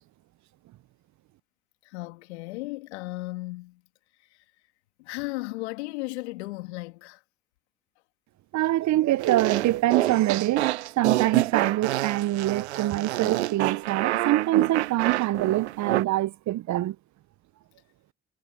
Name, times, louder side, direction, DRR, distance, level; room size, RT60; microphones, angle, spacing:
voice 1, 1.8-3.8 4.2-4.4 5.0-7.2, left 22 dB, 80° left, 3.2 m, -35 dB
voice 2, 8.5-17.0, right 15 dB, 60° right, 1.0 m, -24 dB
sound 1, 9.2-16.0, right 16 dB, 85° right, 0.9 m, -28 dB
hypercardioid pair, 50°, 33 cm